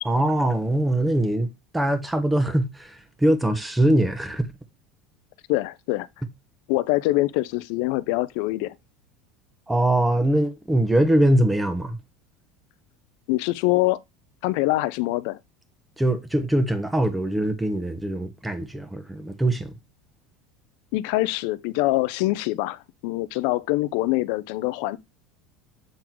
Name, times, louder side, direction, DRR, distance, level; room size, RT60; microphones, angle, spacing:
voice 1, 0.0-4.5 9.7-12.0 16.0-19.7, right 1 dB, 10° right, 1.2 m, -22 dB
voice 2, 5.5-6.1 6.7-8.8 13.3-14.0 14.4-15.4 20.9-25.0, left 18 dB, 70° left, 0.6 m, -24 dB
7.6 x 3.9 x 4.5 m
supercardioid pair, 110°, 0 cm